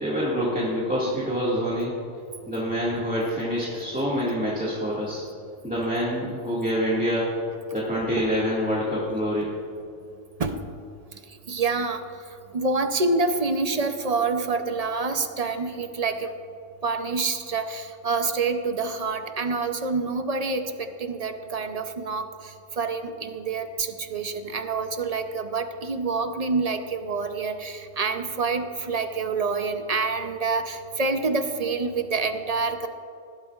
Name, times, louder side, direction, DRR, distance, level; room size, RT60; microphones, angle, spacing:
voice 1, 0.0-1.9 2.5-5.2 5.6-7.3 7.7-9.5, equal, 5° right, -8 dB, 1.9 m, -26 dB
voice 2, 11.1-12.2 12.5-16.3 16.8-32.9, right 4 dB, 40° right, 7 dB, 0.6 m, -27 dB
19.5 x 12.0 x 2.4 m, 2.5 s
omnidirectional pair, 1.4 m